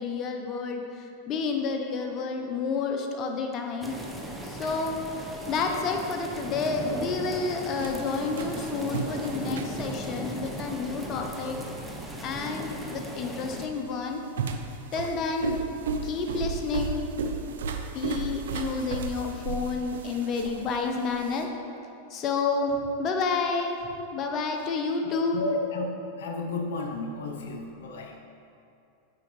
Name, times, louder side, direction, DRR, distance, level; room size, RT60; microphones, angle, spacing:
voice 1, 0.0-3.9 4.4-11.6 12.2-14.2 14.9-15.5 16.0-17.1 17.9-21.5 22.1-23.8 24.1-25.4, left 4 dB, 40° left, 3 dB, 0.7 m, -30 dB
sound 1, 3.8-13.7, equal, 5° right, 0.7 m, -37 dB
sound 2, 7.8-21.4, right 5 dB, 80° right, 0.5 m, -35 dB
voice 2, 25.1-25.9 26.2-28.2, left 3 dB, 75° left, 3 dB, 0.6 m, -32 dB
8.7 x 4.9 x 3.1 m, 2.6 s
hypercardioid pair, 110°, 0 cm